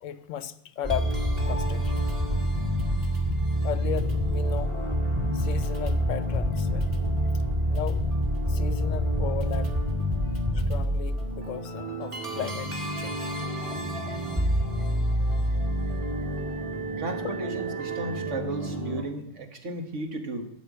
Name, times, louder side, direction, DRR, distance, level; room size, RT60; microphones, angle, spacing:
voice 1, 0.0-2.1 3.6-4.7 5.3-7.0 7.7-8.1 8.5-9.7 10.5-13.3 17.2-17.3, left 10 dB, 85° left, 1.0 m, -36 dB
sound 1, 0.8-19.0, equal, 25° right, 1.7 m, -27 dB
voice 2, 17.0-20.5, right 2 dB, 75° right, 1.8 m, -34 dB
12.5 x 5.5 x 8.3 m
omnidirectional pair, 1.3 m